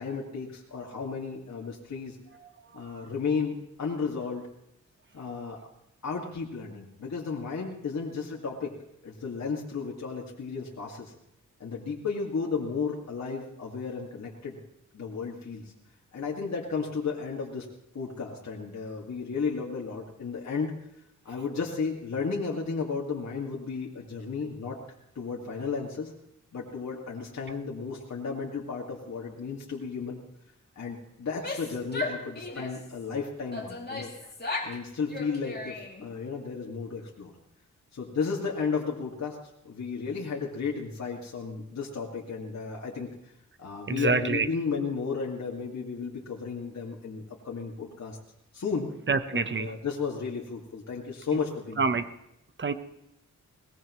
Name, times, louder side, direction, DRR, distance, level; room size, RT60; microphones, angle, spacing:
voice 1, 0.0-2.2 2.7-4.5 5.1-5.7 6.0-8.7 9.0-11.1 11.6-14.6 14.9-15.7 16.1-17.7 17.9-20.8 21.2-24.8 25.2-26.1 26.5-30.2 30.8-34.1 34.6-37.3 37.9-39.4 39.6-43.3 43.6-48.2 48.5-48.9 49.3-51.9, left 5 dB, 60° left, 2.3 m, -33 dB
voice 2, 2.4-3.1 43.9-44.5 49.1-49.7 51.3-51.4 51.8-52.1 52.6-52.7, right 4 dB, 35° right, 1.1 m, -28 dB
Female speech woman speaking / Yell, 31.3-32.9 33.5-34.8 35.1-36.1, left 2 dB, 30° left, 3.0 m, -36 dB
21.5 x 19.5 x 3.2 m
cardioid pair, 75°, 31 cm